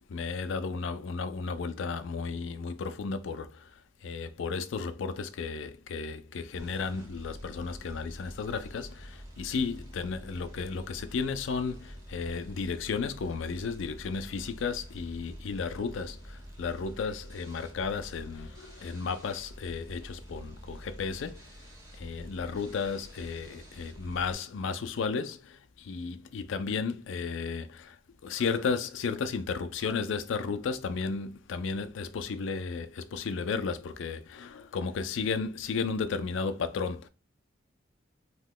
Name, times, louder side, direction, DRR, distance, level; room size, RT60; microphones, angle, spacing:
voice 1, 0.1-21.5 22.0-28.0 28.2-37.1, left 5 dB, 80° left, 0.4 m, -34 dB
sound 1, 6.5-24.3, equal, 15° right, 0.8 m, -47 dB
2.9 x 2.2 x 3.6 m
head